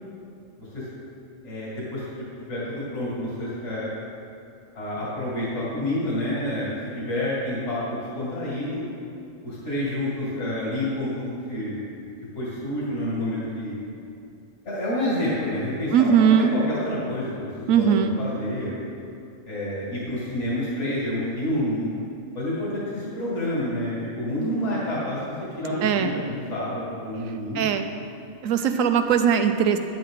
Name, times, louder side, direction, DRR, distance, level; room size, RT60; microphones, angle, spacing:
voice 1, 1.4-3.9 4.7-8.9 9.4-11.8 12.3-13.7 14.6-18.7 19.5-21.9 22.3-27.6, left 1 dB, 60° left, -7 dB, 2.6 m, -29 dB
voice 2, 15.9-16.5 17.7-18.2 25.8-26.1 27.5-27.9 28.4-29.8, right 8 dB, 80° right, 7 dB, 1.0 m, -20 dB
10.5 x 9.3 x 3.7 m, 2.5 s
omnidirectional pair, 1.4 m